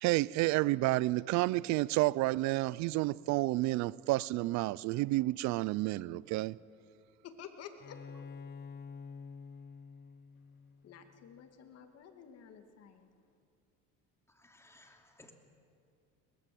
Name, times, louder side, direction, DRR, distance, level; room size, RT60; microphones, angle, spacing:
voice 1, 0.0-6.6, right 19 dB, 65° right, 0.5 m, -30 dB
voice 2, 7.2-8.0 10.8-13.1, left 7 dB, 55° left, 2.3 m, -51 dB
Bowed string instrument, 7.8-11.4, left 5 dB, 30° left, 1.2 m, -49 dB
voice 3, 14.3-15.3, left 2 dB, 10° left, 2.8 m, -60 dB
22.0 x 20.0 x 7.8 m
cardioid pair, 110°, 31 cm